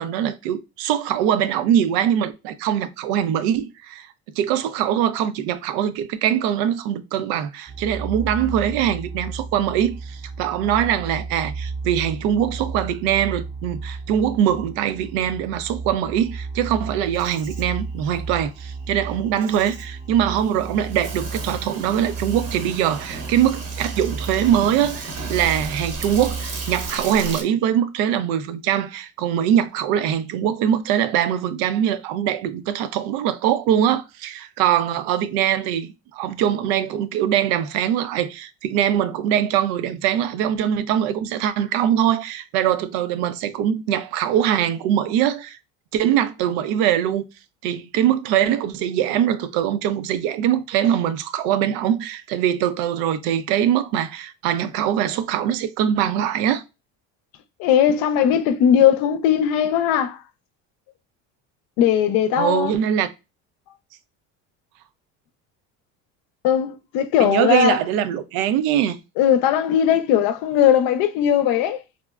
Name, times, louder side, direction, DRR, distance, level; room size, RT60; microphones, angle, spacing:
voice 1, 0.0-4.1 4.3-45.6 45.9-47.2 47.6-56.6 62.4-63.1 67.2-69.0, right 10 dB, 75° right, 0.5 m, -22 dB
sound 1, 7.7-26.9, right 4 dB, 5° right, 0.5 m, -34 dB
Insect, 16.8-27.4, right 3 dB, 60° right, 1.0 m, -35 dB
voice 2, 57.6-60.2 61.8-62.7 66.4-67.8 69.2-71.8, left 9 dB, 70° left, 0.6 m, -18 dB
3.6 x 2.0 x 2.3 m
supercardioid pair, 90°, 37 cm